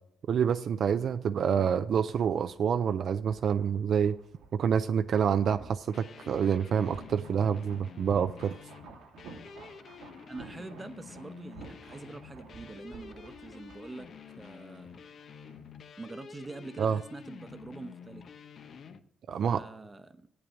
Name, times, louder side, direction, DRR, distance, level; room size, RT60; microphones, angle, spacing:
voice 1, 0.3-4.2 4.5-8.6 16.8-17.0 19.3-19.6, right 7 dB, 60° right, 10 dB, 0.4 m, -27 dB
sound 1, 1.8-15.5 15.8-16.0, right 4 dB, 90° right, 1.7 m, -52 dB
sound 2, 5.9-19.0, left 6 dB, 55° left, 0.8 m, -49 dB
voice 2, 10.3-14.1 14.4-15.0 16.0-18.2 19.4-20.3, right 3 dB, 20° right, 11 dB, 0.9 m, -45 dB
8.2 x 7.9 x 8.7 m, 0.75 s
cardioid pair, 90°, 0 cm